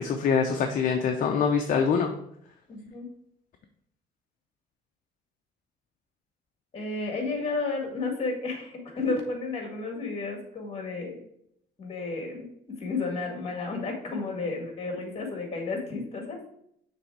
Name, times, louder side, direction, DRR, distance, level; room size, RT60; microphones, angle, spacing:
voice 1, 0.0-2.1, left 6 dB, 50° left, 4 dB, 0.7 m, -24 dB
voice 2, 2.7-3.1 6.7-11.2 11.8-16.5, left 3 dB, 35° left, 2 dB, 2.0 m, -32 dB
6.8 x 3.4 x 4.6 m, 0.71 s
cardioid pair, 110°, 17 cm